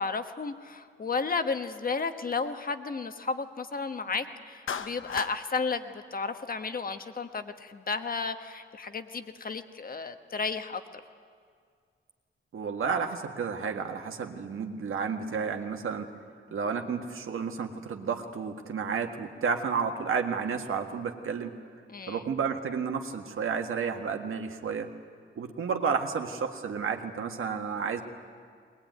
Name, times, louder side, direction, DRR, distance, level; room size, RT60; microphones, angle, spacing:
voice 1, 0.0-10.8 21.9-22.2, left 4 dB, 45° left, 8 dB, 1.3 m, -33 dB
Clapping, 4.7-5.4, left 7 dB, 70° left, 0.9 m, -35 dB
voice 2, 12.5-16.1 16.5-21.5 22.1-24.9 25.4-28.0, right 6 dB, 80° right, 4 dB, 1.8 m, -31 dB
21.5 x 20.5 x 9.4 m, 2.1 s
wide cardioid pair, 110°, 21 cm